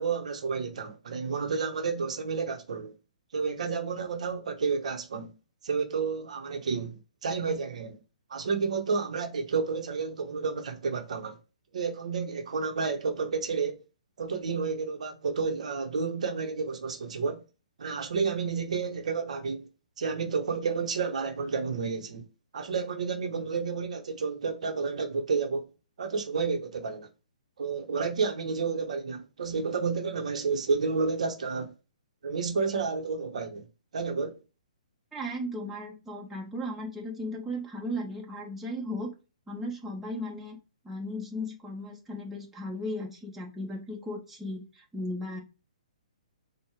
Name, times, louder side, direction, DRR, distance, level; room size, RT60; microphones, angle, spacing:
voice 1, 0.0-2.9 3.3-5.3 5.6-8.0 8.3-11.4 11.7-13.8 14.2-17.4 17.8-19.7 20.0-22.3 22.5-25.7 26.0-27.1 27.6-31.7 32.2-33.7 33.9-34.4, right 5 dB, 65° right, 1.0 m, -30 dB
voice 2, 35.1-39.1 39.5-40.6 40.8-45.4, left 1 dB, 10° right, 1.4 m, -36 dB
4.4 x 2.4 x 4.7 m
figure-of-eight pair, 130°, 4 cm